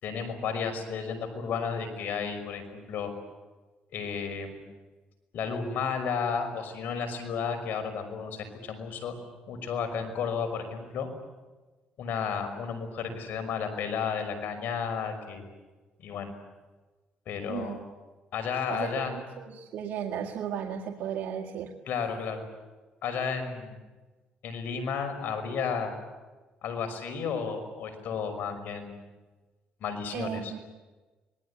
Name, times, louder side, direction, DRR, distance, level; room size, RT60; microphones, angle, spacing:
voice 1, 0.0-3.1 3.9-4.7 5.3-9.2 9.5-11.1 12.0-15.5 16.0-16.3 17.3-17.8 18.3-19.1 21.9-22.4 23.0-23.8 24.4-25.9 26.6-29.0 29.8-30.5, left 6 dB, 70° left, 6 dB, 5.8 m, -32 dB
voice 2, 17.5-17.8 18.7-21.7 30.1-30.6, right 9 dB, 75° right, 3 dB, 1.9 m, -35 dB
25.5 x 20.0 x 9.9 m, 1.2 s
cardioid pair, 90°, 3 cm